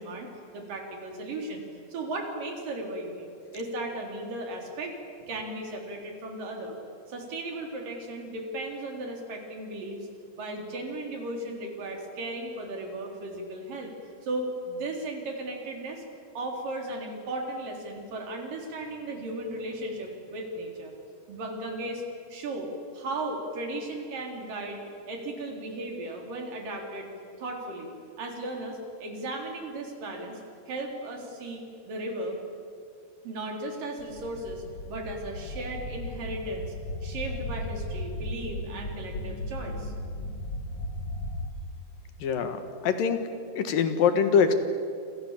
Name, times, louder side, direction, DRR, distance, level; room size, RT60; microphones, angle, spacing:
voice 1, 0.0-5.0 5.3-6.8 7.1-10.1 10.4-13.9 14.2-16.0 16.4-20.9 21.3-22.0 22.3-27.1 27.4-30.4 30.7-32.4 33.2-36.7 37.0-39.9, right 2 dB, 80° right, 2 dB, 5.3 m, -36 dB
sound 1, 34.0-41.5, left 1 dB, 55° left, 2.7 m, -36 dB
voice 2, 42.2-43.2 43.5-44.5, left 6 dB, 85° left, 8 dB, 3.4 m, -24 dB
28.5 x 27.0 x 7.4 m, 2.4 s
omnidirectional pair, 3.8 m